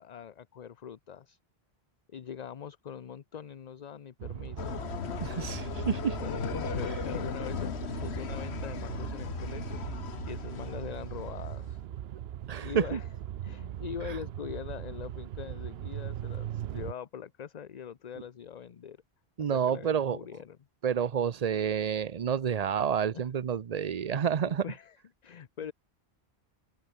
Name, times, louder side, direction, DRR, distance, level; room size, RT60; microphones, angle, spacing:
voice 1, 0.0-1.4 2.1-4.8 6.2-7.7 8.0-11.8 12.6-13.1 13.4-19.0 19.5-20.6 23.1-23.3 24.0-25.0 25.2-25.7, left 8 dB, 45° left, 0.7 m, -43 dB
sound 1, 4.2-16.9, right 11 dB, 75° right, 0.8 m, -39 dB
sound 2, 4.6-11.7, left 7 dB, 90° left, 1.3 m, -37 dB
voice 2, 5.2-6.2 12.5-13.0 19.4-20.2 20.8-24.6, right 8 dB, 45° right, 0.7 m, -29 dB
sound 3, 5.3-14.9, equal, 15° left, 6.4 m, -61 dB
open air
omnidirectional pair, 1.1 m